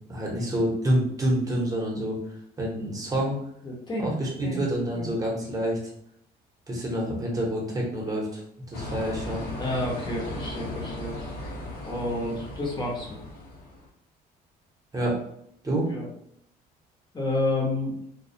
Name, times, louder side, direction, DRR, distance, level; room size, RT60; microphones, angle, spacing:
voice 1, 0.1-2.2 2.6-3.4 4.0-5.8 6.7-8.4 8.7-9.5 14.9-15.2 15.6-15.9, right 1 dB, 20° right, -2 dB, 0.8 m, -27 dB
voice 2, 3.6-4.7 5.0-5.1 9.6-11.2 11.8-13.2 15.7-16.1 17.1-17.9, left 1 dB, 25° left, -3 dB, 0.8 m, -30 dB
sound 1, 8.7-13.9, left 2 dB, 55° left, 0.8 m, -37 dB
2.2 x 2.1 x 2.6 m, 0.70 s
cardioid pair, 110°, 17 cm